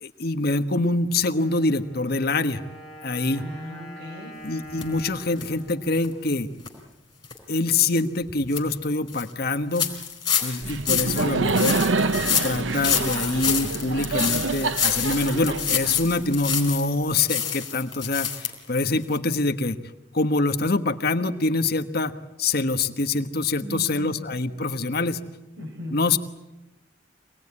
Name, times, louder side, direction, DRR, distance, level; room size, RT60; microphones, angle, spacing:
voice 1, 0.0-2.6 3.0-3.5 4.4-6.5 7.5-9.9 10.4-11.8 12.4-19.8 20.1-25.2 25.9-26.2, left 3 dB, 55° left, 8 dB, 1.3 m, -25 dB
Wind instrument woodwind instrument, 1.3-7.1, equal, ahead, 6.4 m, -45 dB
voice 2, 3.3-4.4 23.6-24.2 25.6-26.0, equal, 65° right, 4 dB, 4.9 m, -37 dB
sound 1, 4.8-4.9 5.4-5.5 6.0-6.1 6.6-6.7 7.2-7.4 7.8-7.9 8.3-8.6 9.1-9.2 9.7-16.9 17.3-18.5 18.8-18.9 19.1-19.2, left 7 dB, 20° left, 4.3 m, -27 dB
Laughter, 10.6-16.4, right 3 dB, 85° right, 0.9 m, -27 dB
26.0 x 19.5 x 9.8 m, 0.95 s
head